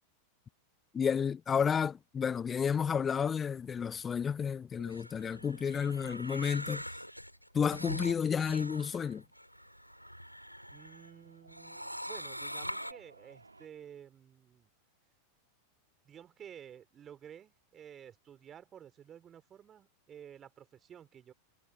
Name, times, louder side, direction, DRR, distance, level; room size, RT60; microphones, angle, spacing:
voice 1, 0.9-6.8 7.5-9.2, left 7 dB, 20° left, 0.7 m, -31 dB
sound 1, 4.8-11.1 11.5-12.9, equal, 90° left, 2.8 m, -43 dB
sound 2, 9.4-13.7, right 3 dB, 80° right, 2.5 m, -59 dB
voice 2, 10.7-14.7 16.0-21.3, right 9 dB, 25° right, 4.1 m, -52 dB
figure-of-eight pair, 90°, 0 cm